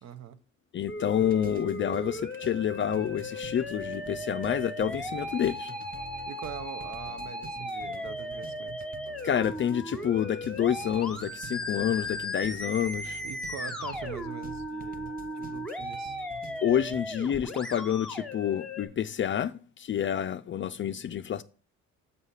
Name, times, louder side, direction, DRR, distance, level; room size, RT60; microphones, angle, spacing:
voice 1, 0.0-0.4 6.3-8.9 13.2-16.2, right 8 dB, 65° right, 0.8 m, -43 dB
voice 2, 0.7-5.7 9.2-13.2 16.6-21.4, left 9 dB, 40° left, 0.4 m, -28 dB
Musical instrument, 0.9-18.8, left 1 dB, ahead, 1.2 m, -37 dB
sound 1, 1.2-17.0, right 7 dB, 30° right, 0.5 m, -48 dB
6.5 x 5.6 x 5.6 m
cardioid pair, 90°, 30 cm